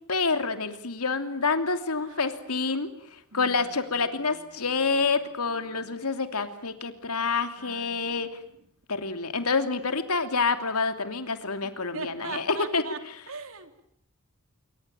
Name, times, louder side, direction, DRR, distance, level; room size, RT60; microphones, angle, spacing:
voice 1, 0.1-8.3 8.9-12.8, left 4 dB, 85° left, 9 dB, 2.9 m, -28 dB
voice 2, 2.0-2.8 3.3-5.1 5.5-6.0 7.6-8.7 11.6-13.0 13.3-13.8, right 3 dB, 65° right, 8 dB, 3.2 m, -43 dB
27.0 x 24.5 x 9.0 m, 0.68 s
head